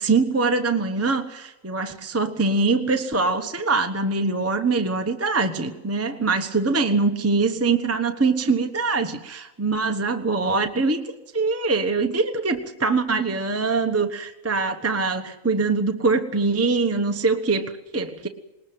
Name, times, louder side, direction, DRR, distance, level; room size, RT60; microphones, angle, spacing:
voice 1, 0.0-18.3, right 3 dB, 10° right, 5 dB, 1.0 m, -23 dB
21.0 x 20.0 x 7.9 m, 1.0 s
omnidirectional pair, 1.5 m